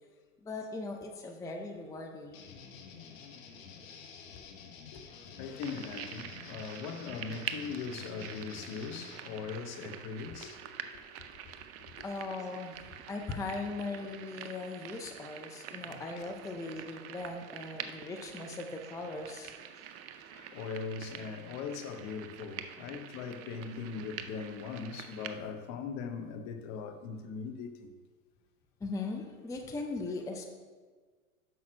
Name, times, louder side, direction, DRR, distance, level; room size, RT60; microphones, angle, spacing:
voice 1, 0.4-2.5 12.0-19.5 28.8-30.5, left 3 dB, 10° left, 0.5 m, -39 dB
sound 1, 2.3-9.2, left 6 dB, 70° left, 1.4 m, -49 dB
voice 2, 4.9-10.6 10.9-11.0 15.9-16.3 20.3-27.9, left 5 dB, 40° left, 0.9 m, -40 dB
sound 2, 5.6-25.4, right 9 dB, 35° right, 0.6 m, -46 dB
6.2 x 5.6 x 6.2 m
hypercardioid pair, 105°, 41 cm